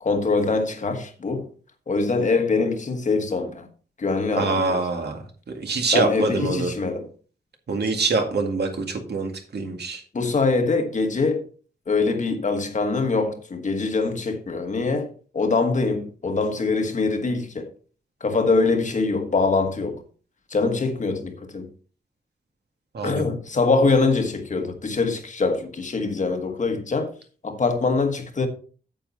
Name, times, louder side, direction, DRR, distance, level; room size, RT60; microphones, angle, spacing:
voice 1, 0.0-1.5 1.9-3.7 4.0-4.8 5.9-7.1 10.1-11.4 11.9-17.7 18.2-20.0 20.5-21.7 23.0-27.1 27.4-28.5, left 3 dB, 45° left, 1.4 m, -23 dB
voice 2, 4.4-5.2 5.5-6.7 7.7-10.0 22.9-23.2, right 3 dB, 75° right, 2.1 m, -25 dB
8.9 x 7.7 x 4.1 m
wide cardioid pair, 175°, 17 cm